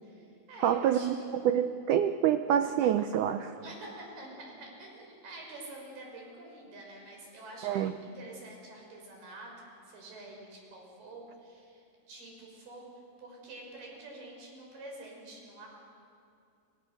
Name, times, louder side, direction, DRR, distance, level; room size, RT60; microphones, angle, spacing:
voice 1, 0.0-1.4 3.6-12.9 13.2-15.7, right 2 dB, 75° right, 0 dB, 7.7 m, -47 dB
voice 2, 0.6-1.2 1.4-3.5 7.6-7.9, right 10 dB, 90° right, 9 dB, 1.8 m, -26 dB
30.0 x 25.0 x 6.4 m, 2.4 s
omnidirectional pair, 4.6 m